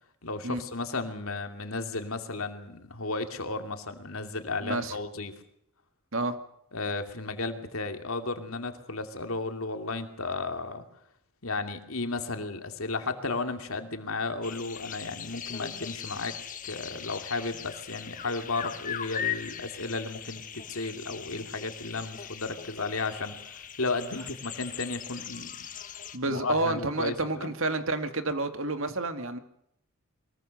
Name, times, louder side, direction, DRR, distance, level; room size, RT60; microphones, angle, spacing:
voice 1, 0.2-5.3 6.7-10.8 11.4-16.4 16.6-25.6 26.2-27.5, left 3 dB, 70° left, 6 dB, 2.7 m, -34 dB
voice 2, 4.6-5.0 6.1-6.4 26.1-29.4, right 2 dB, 65° right, 8 dB, 2.3 m, -29 dB
sound 1, 14.4-26.2, left 8 dB, 35° left, 1.5 m, -40 dB
23.5 x 22.0 x 6.6 m, 0.75 s
head